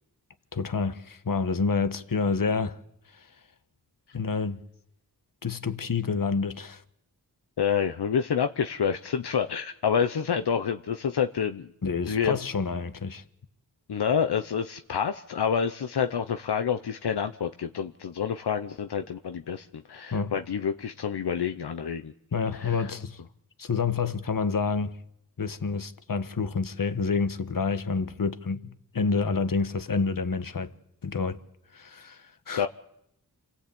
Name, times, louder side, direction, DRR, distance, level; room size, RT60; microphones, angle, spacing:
voice 1, 0.5-2.8 3.1-3.3 4.1-4.6 5.4-6.8 11.8-13.2 20.1-20.3 22.3-23.2 23.6-25.0 25.4-30.7 31.0-31.4 31.7-32.7, left 4 dB, 55° left, 1.4 m, -28 dB
voice 2, 7.6-11.7 12.1-12.4 13.9-22.1 22.6-22.9 32.6-32.7, left 7 dB, 80° left, 0.9 m, -28 dB
27.5 x 17.5 x 8.5 m
wide cardioid pair, 65°, 39 cm